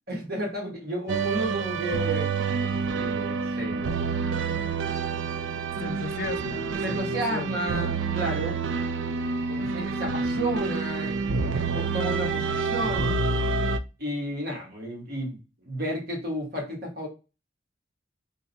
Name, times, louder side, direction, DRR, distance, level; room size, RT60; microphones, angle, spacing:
voice 1, 0.1-2.3 3.0-4.3 6.8-8.6 9.5-13.1 14.0-17.1, right 1 dB, 55° right, 1.6 m, -32 dB
sound 1, 1.1-13.8, right 4 dB, 85° right, 0.4 m, -28 dB
voice 2, 5.8-7.8, left 4 dB, 50° left, 0.4 m, -36 dB
3.8 x 2.2 x 4.0 m
head